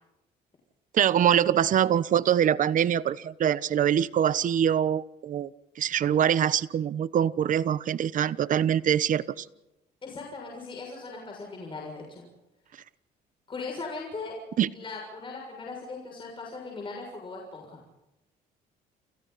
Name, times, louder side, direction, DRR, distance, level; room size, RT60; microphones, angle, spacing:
voice 1, 0.9-5.5 5.8-9.4 14.6-14.7, right 9 dB, 50° right, 16 dB, 1.0 m, -24 dB
voice 2, 10.0-12.2 13.5-14.4 14.7-17.8, left 3 dB, 30° left, 0 dB, 6.8 m, -39 dB
29.5 x 29.0 x 4.2 m, 0.95 s
cardioid pair, 110°, 17 cm